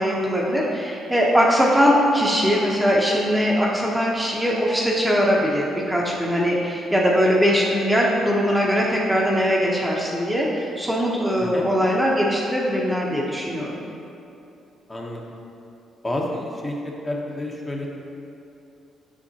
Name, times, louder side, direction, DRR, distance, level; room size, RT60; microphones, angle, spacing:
voice 1, 0.0-13.7, equal, 5° right, -3 dB, 0.8 m, -21 dB
voice 2, 11.4-11.7 14.9-15.2 16.0-16.8 17.0-17.9, left 1 dB, 20° left, -2 dB, 0.9 m, -29 dB
7.2 x 5.8 x 2.8 m, 2.7 s
cardioid pair, 90°, 0 cm